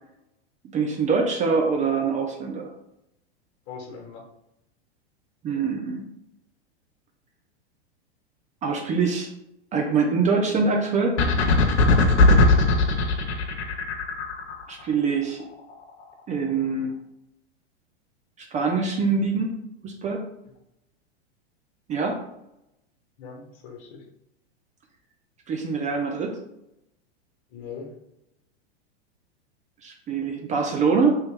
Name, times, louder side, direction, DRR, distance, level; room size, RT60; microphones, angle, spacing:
voice 1, 0.7-2.7 5.4-6.0 8.6-9.3 9.7-11.2 14.7-15.4 16.3-16.9 18.4-19.5 19.8-20.3 21.9-22.2 25.5-26.4 29.8-31.2, right 4 dB, 25° right, 2 dB, 0.4 m, -24 dB
voice 2, 3.7-4.2 12.2-12.7 23.2-24.0 27.5-27.9, left 5 dB, 45° left, 2 dB, 1.1 m, -40 dB
sound 1, 11.2-14.6, left 2 dB, 75° left, 0.7 m, -19 dB
3.0 x 3.0 x 3.3 m, 0.83 s
hypercardioid pair, 100°, 33 cm